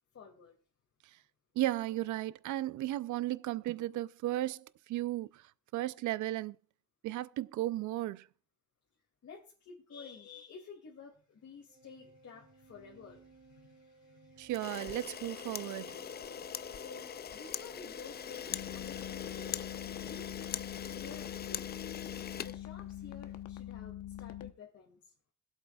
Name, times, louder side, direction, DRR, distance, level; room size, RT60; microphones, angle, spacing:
voice 1, 0.1-0.6 9.2-14.5 16.7-19.6 20.0-20.4 20.7-21.7 22.4-25.1, left 5 dB, 55° left, 2.3 m, -52 dB
voice 2, 1.6-6.6 7.0-8.3 14.4-16.0, right 15 dB, 75° right, 0.5 m, -35 dB
Organ, 11.7-22.4, right 4 dB, 25° right, 1.3 m, -60 dB
Camera, 14.5-23.2, left 8 dB, 35° left, 0.4 m, -42 dB
sound 1, 18.5-24.5, left 12 dB, 80° left, 1.0 m, -44 dB
22.0 x 8.2 x 2.3 m
cardioid pair, 90°, 30 cm